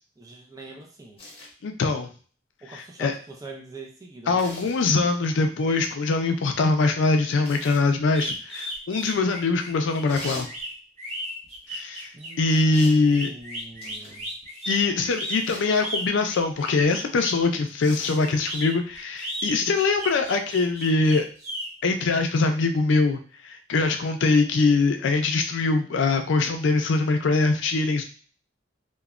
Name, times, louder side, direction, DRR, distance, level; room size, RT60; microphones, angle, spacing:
voice 1, 0.2-1.2 2.6-5.2 12.1-14.3, right 2 dB, 20° right, 0 dB, 0.4 m, -43 dB
sound 1, 1.2-1.5 4.4-4.8 7.4-7.9 10.1-10.5 12.7-13.0 13.8-14.2 15.4-15.8 17.8-18.3 19.7-19.8, left 1 dB, 30° left, 0.9 m, -40 dB
voice 2, 1.6-2.1 2.7-3.1 4.3-10.5 11.7-12.1 12.4-13.3 14.7-21.3 21.8-28.0, left 3 dB, 65° left, 6 dB, 0.4 m, -23 dB
sound 2, 8.1-17.4 18.2-21.7, equal, 35° right, 1.0 m, -34 dB
2.9 x 2.1 x 2.4 m, 0.40 s
head